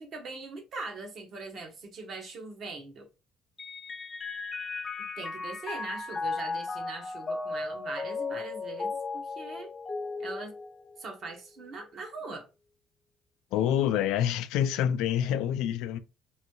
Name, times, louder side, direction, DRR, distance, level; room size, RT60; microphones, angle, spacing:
voice 1, 0.0-3.1 5.0-9.7 10.2-10.5 11.0-12.4, right 3 dB, 45° right, 1.1 m, -41 dB
Mallet percussion, 3.6-11.3, left 3 dB, 25° left, 0.4 m, -36 dB
voice 2, 13.5-16.0, left 10 dB, 85° left, 0.4 m, -27 dB
3.1 x 2.7 x 2.9 m
cardioid pair, 140°, 0 cm